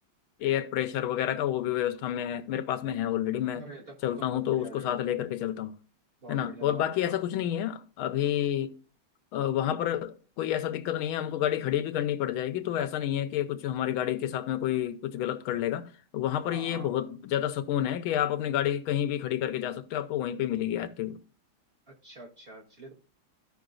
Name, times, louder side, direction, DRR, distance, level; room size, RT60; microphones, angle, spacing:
voice 1, 0.4-3.6 4.0-5.7 6.3-8.7 9.3-21.2, left 11 dB, 90° left, 1.5 m, -29 dB
voice 2, 3.5-4.9 6.2-7.1 16.4-16.9 21.9-22.9, right 2 dB, 30° right, 1.5 m, -46 dB
14.5 x 5.4 x 2.5 m
omnidirectional pair, 2.2 m